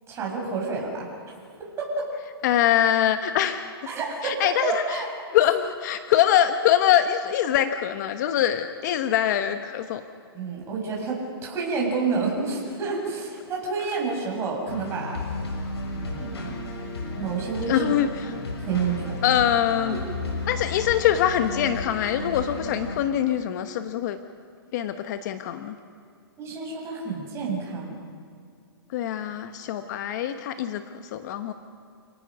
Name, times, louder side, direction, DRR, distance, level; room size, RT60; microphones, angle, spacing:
voice 1, 0.1-1.0 1.8-2.1 3.9-5.1 10.3-15.2 15.9-16.6 17.2-17.9 18.6-19.1 19.9-20.0 26.4-28.0, right 4 dB, 20° right, -2 dB, 6.8 m, -29 dB
voice 2, 2.4-3.7 4.2-5.0 5.3-10.0 17.7-18.4 19.2-20.0 20.5-24.2 24.7-25.7 28.9-31.5, left 11 dB, 45° left, 8 dB, 1.1 m, -23 dB
sound 1, 14.7-23.0, left 2 dB, 90° left, 6.5 m, -33 dB
28.5 x 17.5 x 6.3 m, 2.3 s
hypercardioid pair, 145°, 13 cm